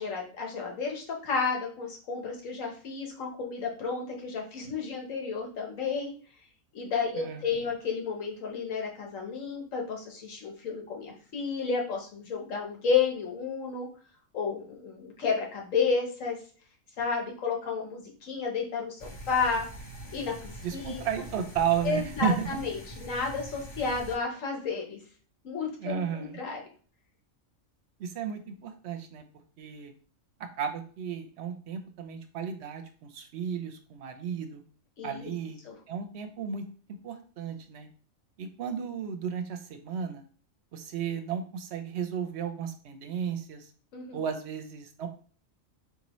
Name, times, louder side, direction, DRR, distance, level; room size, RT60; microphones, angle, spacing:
voice 1, 0.0-6.1 6.7-13.9 14.3-16.4 17.0-19.6 20.1-21.0 21.8-25.0 25.4-26.6 35.0-35.3 35.6-35.7 43.9-44.2, left 5 dB, 75° left, 0 dB, 1.4 m, -31 dB
voice 2, 7.1-7.5 20.6-22.6 25.8-26.4 28.0-29.2 29.6-29.9 30.6-34.6 35.0-36.6 37.0-37.9 38.4-40.2 40.7-43.7 44.1-45.1, right 7 dB, 65° right, 7 dB, 0.8 m, -33 dB
sound 1, 19.0-24.2, equal, 25° left, 1.0 m, -44 dB
4.1 x 2.8 x 3.0 m, 0.42 s
omnidirectional pair, 1.4 m